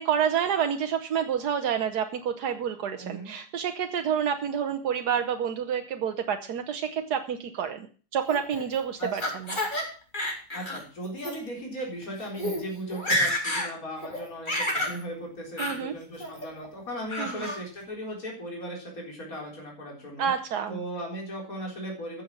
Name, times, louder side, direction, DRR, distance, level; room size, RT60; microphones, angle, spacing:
voice 1, 0.0-9.6 15.6-15.9 17.2-17.5 20.2-20.8, right 8 dB, 85° right, 7 dB, 1.5 m, -28 dB
voice 2, 3.0-3.3 9.0-9.3 10.5-20.3 20.7-22.2, equal, 60° left, -1 dB, 4.6 m, -37 dB
Laughter, 8.3-9.8 10.1-10.8 11.2-11.3 12.0-12.1 12.3-12.6 12.9-13.7 14.0-15.0 15.6-15.8 16.2-16.7 17.1-17.6, left 1 dB, 30° left, 4.0 m, -29 dB
14.0 x 8.6 x 6.1 m, 0.40 s
omnidirectional pair, 1.7 m